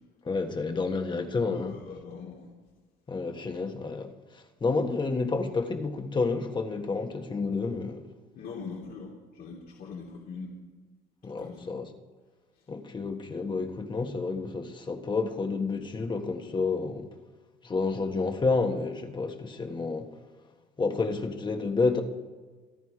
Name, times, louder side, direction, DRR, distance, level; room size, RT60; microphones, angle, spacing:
voice 1, 0.2-1.8 3.1-4.1 4.6-8.0 11.2-11.9 12.7-17.1 17.6-20.1 20.8-22.0, left 4 dB, 25° left, 1.6 m, -29 dB
voice 2, 1.4-2.5 8.3-10.5 11.4-11.7, left 5 dB, 65° left, 2.8 m, -41 dB
27.5 x 10.5 x 4.9 m
cardioid pair, 110°, 17 cm